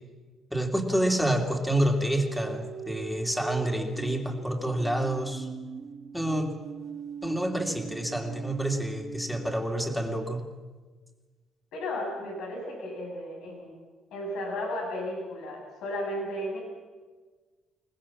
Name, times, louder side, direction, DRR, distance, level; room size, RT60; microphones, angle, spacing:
voice 1, 0.5-5.5 6.1-6.5 7.2-10.5, right 1 dB, ahead, 3 dB, 2.9 m, -28 dB
sound 1, 2.2-9.7, right 6 dB, 50° right, 2.1 m, -41 dB
voice 2, 11.7-13.7 14.1-16.6, left 1 dB, 85° left, 0 dB, 6.9 m, -34 dB
23.0 x 19.5 x 7.4 m, 1.4 s
cardioid pair, 90°, 0 cm